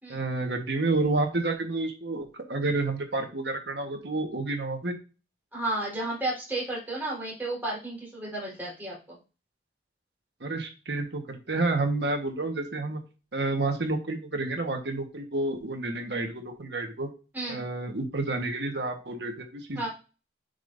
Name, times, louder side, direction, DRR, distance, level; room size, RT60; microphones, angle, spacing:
voice 1, 0.1-4.9 10.4-13.0 13.3-17.1 17.5-19.9, right 2 dB, 70° right, 4 dB, 1.4 m, -30 dB
voice 2, 5.5-9.2 17.3-17.6 19.7-19.9, right 2 dB, 10° right, -5 dB, 4.2 m, -32 dB
10.0 x 5.2 x 2.7 m, 0.32 s
head